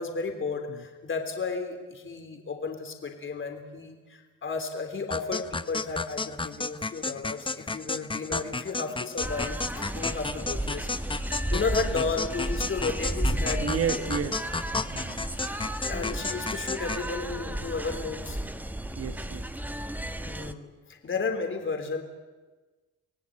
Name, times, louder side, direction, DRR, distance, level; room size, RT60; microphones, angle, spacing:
voice 1, 0.0-10.9 11.5-14.0 15.2-15.4 15.8-18.4 20.2-22.0, left 4 dB, 40° left, 4 dB, 3.6 m, -33 dB
sound 1, 5.1-17.1, left 3 dB, 15° left, 0.9 m, -33 dB
sound 2, 9.2-20.5, right 1 dB, 5° right, 1.3 m, -33 dB
voice 2, 13.6-14.5 14.9-15.2 19.0-19.5, right 7 dB, 50° right, 10 dB, 1.7 m, -32 dB
25.5 x 17.0 x 9.0 m, 1.3 s
cardioid pair, 90°, 30 cm